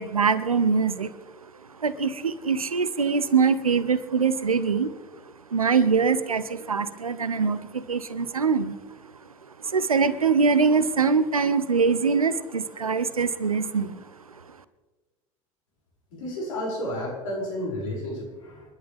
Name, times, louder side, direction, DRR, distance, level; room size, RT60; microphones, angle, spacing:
voice 1, 0.0-1.5 1.8-4.9 5.2-9.1 9.6-14.4, right 5 dB, 90° right, 14 dB, 0.9 m, -24 dB
voice 2, 16.1-18.6, left 1 dB, 70° left, -2 dB, 6.8 m, -31 dB
27.5 x 11.5 x 3.6 m, 1.2 s
figure-of-eight pair, 75°, 18 cm